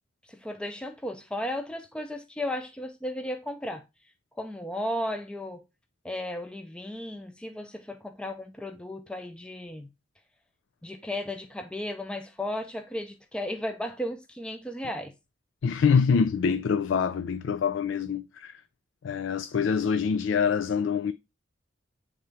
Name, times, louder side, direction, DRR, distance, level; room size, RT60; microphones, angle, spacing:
voice 1, 0.2-3.8 4.4-5.6 6.0-9.9 10.8-15.1, left 1 dB, 5° left, 0.5 m, -35 dB
voice 2, 15.6-18.6 19.0-21.1, left 6 dB, 85° left, 0.4 m, -25 dB
8.3 x 3.6 x 4.4 m
head